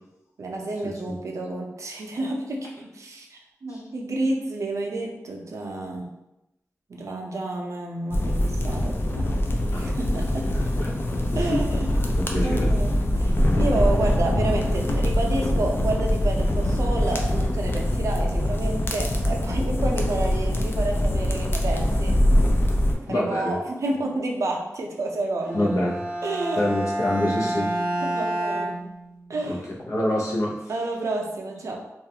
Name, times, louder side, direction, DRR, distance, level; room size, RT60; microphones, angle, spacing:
voice 1, 0.4-6.1 6.9-9.5 9.8-10.5 11.4-11.9 12.3-22.2 23.1-25.7 26.2-26.7 28.0-28.9 29.3-29.7 30.7-31.8, right 2 dB, 75° right, 0 dB, 0.4 m, -30 dB
sound 1, 8.1-22.9, left 1 dB, 45° left, 0.4 m, -23 dB
voice 2, 10.5-10.9 11.3-11.6 12.0-12.7 23.1-23.6 25.5-25.9 26.6-27.7 29.5-29.6 29.9-30.6, left 1 dB, 80° left, -4 dB, 0.7 m, -26 dB
Bowed string instrument, 25.4-29.5, right 1 dB, 15° right, 0.5 m, -29 dB
2.4 x 2.3 x 2.8 m, 0.91 s
wide cardioid pair, 100°, 5 cm